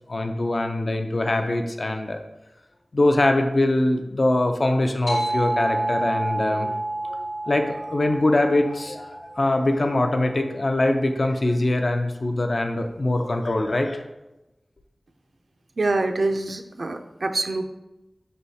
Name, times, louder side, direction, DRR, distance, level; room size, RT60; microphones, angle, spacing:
voice 1, 0.1-2.2 2.9-6.7 7.0-7.2 7.5-14.0, left 2 dB, 60° left, 5 dB, 0.4 m, -23 dB
sound 1, 5.1-10.0, right 1 dB, 75° left, 1.1 m, -29 dB
voice 2, 15.8-17.6, right 2 dB, 75° right, 7 dB, 0.4 m, -25 dB
5.5 x 3.3 x 2.7 m, 0.97 s
wide cardioid pair, 50°, 0 cm